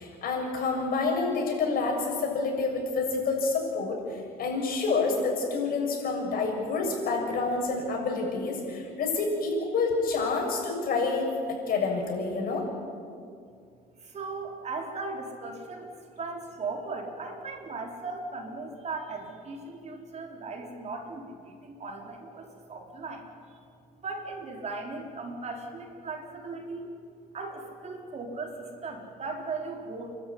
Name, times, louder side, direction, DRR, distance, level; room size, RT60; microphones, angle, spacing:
voice 1, 0.0-12.6, left 4 dB, 60° left, 1 dB, 7.0 m, -28 dB
voice 2, 14.0-15.9 16.2-23.6 24.0-26.9 27.3-30.1, right 3 dB, 40° right, 1 dB, 4.6 m, -38 dB
30.0 x 12.5 x 9.8 m, 2.3 s
cardioid pair, 110°, 17 cm